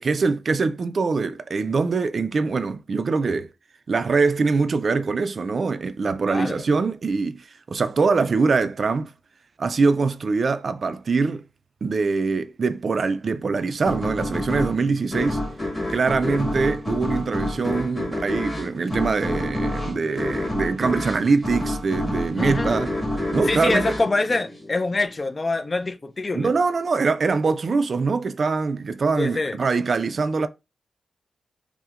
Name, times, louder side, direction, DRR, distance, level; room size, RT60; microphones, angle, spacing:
voice 1, 0.0-3.5 3.9-9.1 9.6-11.4 11.8-15.4 15.9-22.9 23.3-23.9 26.3-30.5, right 4 dB, 55° right, 0.3 m, -23 dB
voice 2, 6.3-6.6 22.4-22.7 23.4-26.5 29.2-29.6, left 3 dB, 35° left, 0.4 m, -25 dB
sound 1, 13.8-25.1, left 1 dB, 20° left, 1.4 m, -28 dB
5.6 x 2.1 x 2.4 m
cardioid pair, 90°, 0 cm